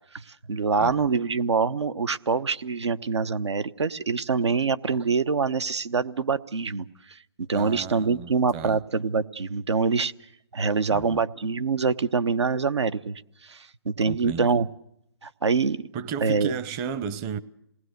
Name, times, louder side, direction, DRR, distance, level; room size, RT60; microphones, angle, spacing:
voice 1, 0.1-10.1 10.5-14.7 15.2-15.8 16.2-16.5, right 5 dB, 80° right, 1.0 m, -25 dB
voice 2, 7.5-8.8 10.9-11.2 14.1-14.6 15.9-17.4, right 6 dB, 20° right, 0.8 m, -34 dB
27.5 x 19.0 x 6.6 m
hypercardioid pair, 150°, 14 cm